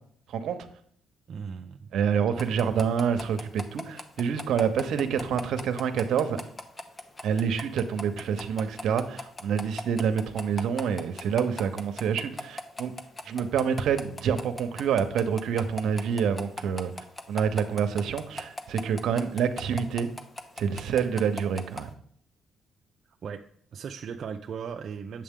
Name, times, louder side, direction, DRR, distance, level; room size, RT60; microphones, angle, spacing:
voice 1, 1.3-1.9 2.3-2.5 23.2-23.4 23.7-25.2, right 6 dB, 60° right, 4 dB, 0.5 m, -37 dB
voice 2, 1.9-6.4 7.2-12.9 13.2-16.9 17.3-20.2 20.6-21.9, right 7 dB, 75° right, 9 dB, 0.8 m, -27 dB
sound 1, 2.4-21.9, left 2 dB, 25° left, 0.8 m, -38 dB
8.6 x 7.3 x 3.7 m, 0.62 s
cardioid pair, 90°, 0 cm